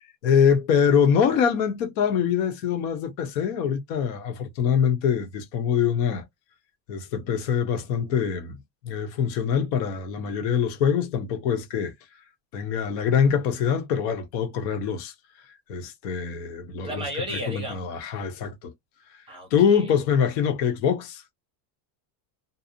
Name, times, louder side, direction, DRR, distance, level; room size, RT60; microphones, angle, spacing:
voice 1, 0.2-6.2 6.9-8.6 8.8-11.9 12.5-15.1 15.7-17.1 17.3-18.7 19.5-21.2, left 7 dB, 90° left, 1.0 m, -24 dB
voice 2, 16.8-17.9 19.3-19.9, equal, 10° right, 0.4 m, -34 dB
2.7 x 2.0 x 2.7 m
cardioid pair, 175°, 48 cm